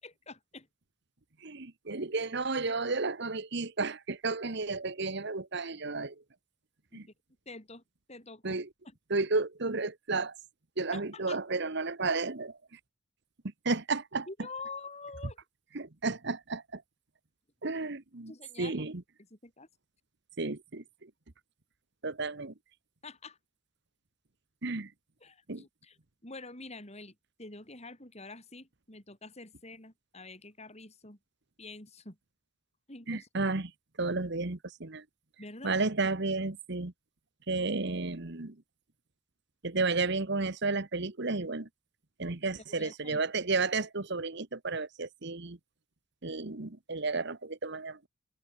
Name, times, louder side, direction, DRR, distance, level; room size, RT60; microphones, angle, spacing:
voice 1, 0.0-0.7 6.9-7.0 7.5-7.8 8.1-8.6 10.9-11.4 14.3-15.4 18.3-18.8 19.3-19.7 23.0-23.4 25.2-26.0 26.2-31.2 31.6-32.2 32.9-33.3 35.4-35.8 42.7-43.2, left 3 dB, 30° left, 5.5 m, -46 dB
voice 2, 1.4-6.2 6.9-7.1 8.4-8.7 9.1-10.4 10.8-12.8 13.6-14.3 15.7-16.8 17.6-18.3 18.6-19.0 20.4-21.1 22.0-22.5 24.6-24.9 25.5-25.6 33.1-33.7 34.0-35.0 35.6-36.9 37.5-38.6 39.6-41.7 42.2-45.6 46.2-48.0, right 3 dB, 55° right, 1.4 m, -32 dB
open air
head